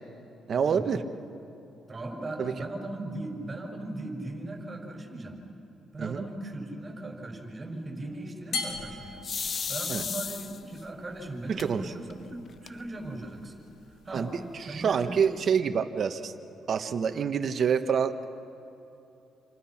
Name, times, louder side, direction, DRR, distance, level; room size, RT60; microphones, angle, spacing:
voice 1, 0.5-1.0 2.4-2.5 6.0-6.2 9.9-10.0 11.5-11.8 14.1-14.3 14.7-16.3 16.7-18.3, right 7 dB, 55° right, 8 dB, 1.4 m, -27 dB
voice 2, 1.9-5.4 5.9-9.3 9.7-13.6 14.0-14.3 14.6-15.0, right 2 dB, 25° right, 1 dB, 5.8 m, -38 dB
sound 1, 8.5-15.5, left 4 dB, 80° left, 3.7 m, -43 dB
sound 2, 9.2-10.8 11.6-11.7 12.1-12.2 12.5-13.1, left 6 dB, 45° left, 0.6 m, -33 dB
28.5 x 26.5 x 6.0 m, 2.9 s
cardioid pair, 90°, 0 cm